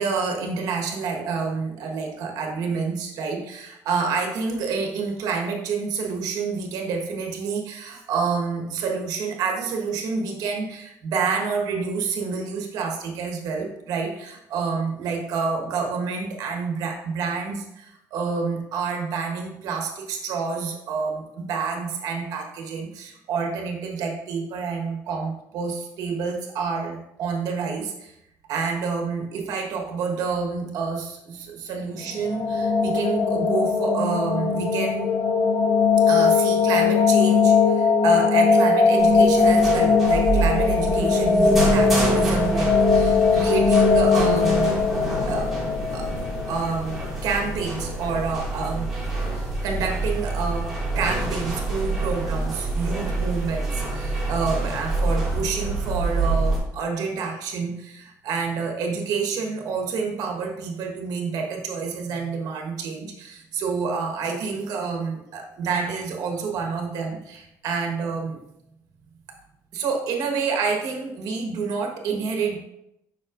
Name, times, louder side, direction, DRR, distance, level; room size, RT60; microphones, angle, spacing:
voice 1, 0.0-28.1 28.5-35.1 36.1-45.0 45.3-45.5 45.9-46.1 46.5-48.9 49.3-68.4 69.7-72.6, right 5 dB, 65° right, 1 dB, 1.4 m, -28 dB
sound 1, 32.0-47.0, left 4 dB, 35° left, 0.6 m, -20 dB
sound 2, 39.0-56.6, right 2 dB, 5° right, 2.1 m, -27 dB
7.3 x 5.8 x 2.6 m, 0.81 s
cardioid pair, 170°, 7 cm